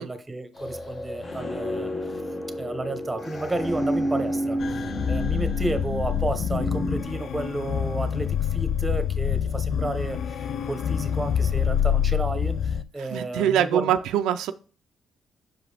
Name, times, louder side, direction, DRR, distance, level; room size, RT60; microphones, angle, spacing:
voice 1, 0.0-2.2 2.6-14.0, right 2 dB, 15° right, 0.9 m, -32 dB
sound 1, 0.6-7.0, left 1 dB, 40° left, 1.4 m, -30 dB
sound 2, 4.6-12.8, left 8 dB, 60° left, 0.4 m, -26 dB
voice 2, 13.1-14.5, right 10 dB, 90° right, 0.3 m, -23 dB
6.2 x 4.9 x 3.4 m
cardioid pair, 90°, 0 cm